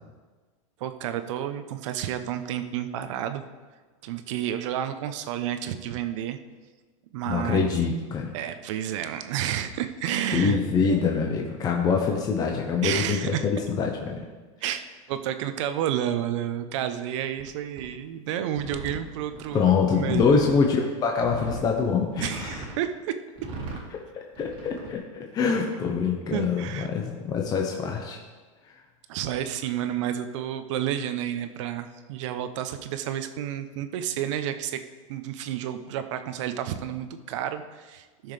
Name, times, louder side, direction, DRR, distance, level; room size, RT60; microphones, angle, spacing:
voice 1, 0.8-3.4 4.0-6.4 7.1-7.7 8.3-10.6 10.9-11.0 12.8-13.5 14.6-20.4 22.2-23.2 26.3-26.9 29.1-34.8 35.1-38.3, right 10 dB, 60° right, 9 dB, 0.8 m, -30 dB
voice 2, 7.3-8.3 10.3-14.2 19.5-22.6 24.4-28.2, left 5 dB, 20° left, 1 dB, 0.8 m, -25 dB
sound 1, 17.4-17.5 17.8-17.9 18.6-20.6 21.2-21.7 22.1-22.8 23.4-23.9 24.3-24.9, right 3 dB, 30° right, 2.0 m, -38 dB
14.5 x 6.3 x 3.3 m, 1.3 s
supercardioid pair, 145°, 18 cm